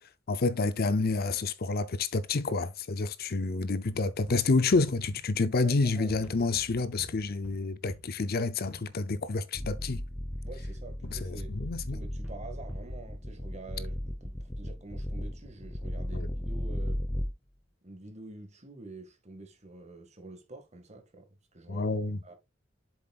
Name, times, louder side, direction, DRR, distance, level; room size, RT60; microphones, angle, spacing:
voice 1, 0.3-10.0 11.1-12.0 16.1-16.3 21.7-22.2, left 3 dB, 50° left, 0.6 m, -29 dB
sound 1, 3.8-5.8 6.1-10.6 11.0-13.0, equal, 5° right, 2.2 m, -48 dB
voice 2, 5.6-6.3 10.4-17.0 17.8-21.9 22.2-22.3, right 3 dB, 35° right, 1.9 m, -47 dB
sound 2, 9.5-17.3, left 1 dB, 20° left, 1.0 m, -36 dB
7.6 x 7.2 x 2.4 m
head